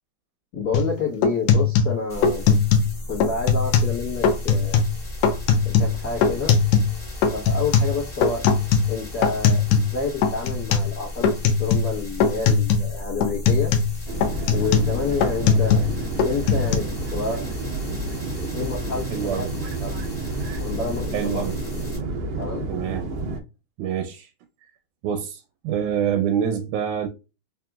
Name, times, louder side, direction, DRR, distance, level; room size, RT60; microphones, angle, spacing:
voice 1, 0.5-2.6 3.1-4.8 5.6-6.5 7.3-8.4 8.9-11.3 11.6-13.7 14.5-15.8 16.2-17.6 18.5-19.4 19.8-20.0 20.6-21.4 22.4-22.7, left 4 dB, 60° left, 1.0 m, -29 dB
sound 1, 0.7-0.9 1.2-2.9 3.2-4.0 4.2-4.9 5.2-7.0 7.2-10.0 10.2-10.9 11.2-12.0 12.2-12.9 13.2-15.9 16.2-16.8, left 6 dB, 75° left, 1.7 m, -20 dB
sound 2, 2.1-22.0, left 1 dB, 30° left, 0.9 m, -35 dB
sound 3, 14.1-23.4, right 2 dB, 65° right, 1.7 m, -30 dB
voice 2, 19.1-19.5 21.1-21.6 22.7-23.1 23.8-24.3 25.0-27.1, right 8 dB, 85° right, 2.1 m, -26 dB
5.0 x 2.9 x 2.3 m
omnidirectional pair, 3.5 m